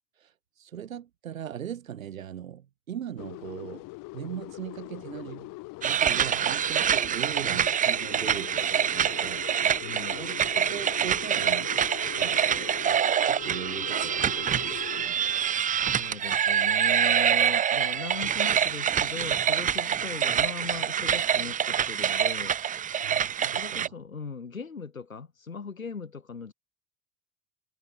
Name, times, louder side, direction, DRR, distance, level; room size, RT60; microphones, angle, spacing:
voice 1, 0.2-3.9 4.1-5.5 5.8-9.5 10.2-11.7 12.1-12.7 13.2-15.2 23.0-23.9, right 9 dB, 85° right, 0.7 m, -39 dB
sound 1, 3.2-15.6, left 22 dB, 55° left, 1.4 m, -42 dB
sound 2, 5.8-23.9, right 9 dB, 20° right, 0.5 m, -26 dB
voice 2, 9.8-10.3 15.7-22.6 23.6-26.5, left 5 dB, 90° left, 3.4 m, -39 dB
figure-of-eight pair, 65°, 40 cm